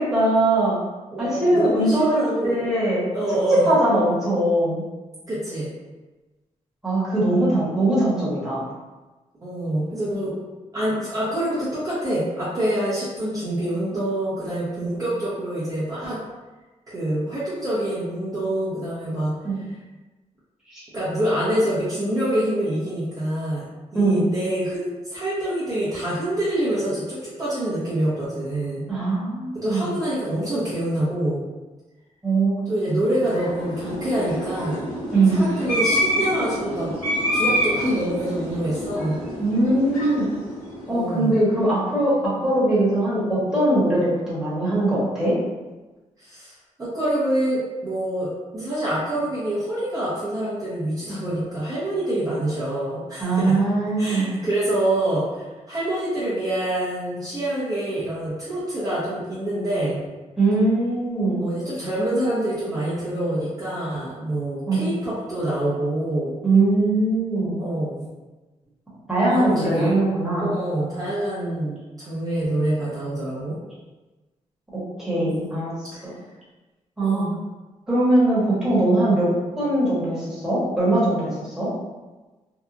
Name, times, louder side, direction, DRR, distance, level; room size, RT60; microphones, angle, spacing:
voice 1, 0.1-0.8 1.2-3.0 3.5-4.8 6.8-8.7 19.4-19.6 20.7-20.8 23.9-24.3 28.9-29.9 32.2-32.5 35.1-35.4 39.4-40.3 40.9-42.1 42.4-45.3 53.2-54.3 60.4-61.4 64.7-64.8 66.4-67.6 69.1-70.5 75.0-75.7 76.0-76.1 77.0-77.3 77.9-79.3 79.6-81.7, right 2 dB, 5° right, -10 dB, 1.1 m, -21 dB
voice 2, 1.1-2.6 3.1-3.7 5.3-5.7 9.4-10.3 10.7-16.2 16.9-19.3 20.9-23.6 23.9-28.8 29.5-31.4 32.7-34.9 35.3-36.9 37.3-39.2 40.9-41.4 46.2-53.6 54.0-60.0 61.4-66.4 67.6-68.0 69.3-69.9 70.4-73.6 75.3-75.6 75.9-76.0 77.0-77.4, right 1 dB, 25° right, -10 dB, 0.7 m, -26 dB
sound 1, 33.0-41.5, equal, 70° left, 1.1 m, -27 dB
2.8 x 2.3 x 2.4 m, 1.2 s
wide cardioid pair, 140°, 13 cm